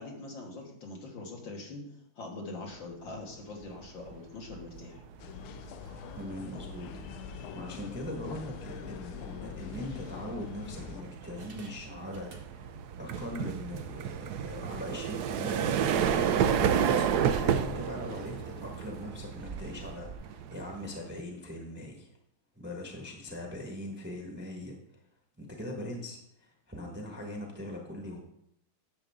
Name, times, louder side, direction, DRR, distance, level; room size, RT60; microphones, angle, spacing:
voice 1, 0.0-1.8 2.2-5.0, left 3 dB, 65° left, -1 dB, 2.3 m, -43 dB
sound 1, 3.8-4.1 4.5-21.2, right 8 dB, 75° right, 0.9 m, -32 dB
sound 2, 5.2-11.0, left 11 dB, 80° left, 1.4 m, -44 dB
voice 2, 6.1-12.7 13.0-15.8 16.3-22.1 22.6-24.7 25.4-28.2, left 1 dB, 5° right, 1 dB, 1.1 m, -40 dB
sound 3, 11.2-12.9 13.2-13.4 13.8-13.9 14.2-14.3 15.2-20.1, right 3 dB, 45° right, 0.8 m, -51 dB
10.5 x 7.0 x 3.7 m, 0.74 s
omnidirectional pair, 2.3 m